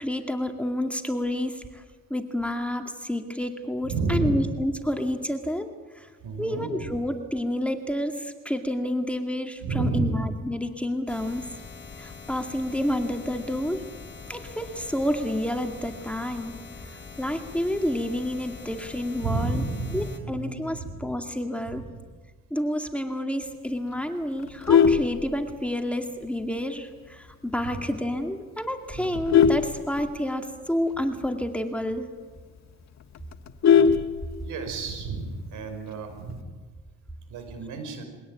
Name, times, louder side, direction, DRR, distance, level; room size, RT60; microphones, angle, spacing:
voice 1, 0.0-1.8 2.1-6.1 6.4-11.5 12.0-13.9 14.3-16.6 16.8-19.6 19.9-21.8 22.5-32.1, left 1 dB, 5° left, 5 dB, 2.2 m, -29 dB
voice 2, 3.8-4.4 6.2-7.0 9.6-10.2 19.2-21.0 21.7-22.0 27.6-27.8 28.9-29.3 34.4-36.4 37.3-38.0, right 3 dB, 85° right, 6 dB, 5.5 m, -31 dB
sound 1, 11.1-20.2, left 4 dB, 35° left, 3.9 m, -43 dB
Vehicle horn car horn honking, 24.4-25.9 26.4-26.6 26.9-27.0 27.4-27.5 27.8-28.2 28.7-30.6 30.9-31.0 31.3-31.4 31.8-31.9 32.3-32.4 32.6-34.7 35.9-36.3, left 7 dB, 60° left, 1.5 m, -21 dB
23.0 x 18.0 x 9.3 m, 1.4 s
cardioid pair, 90°, 30 cm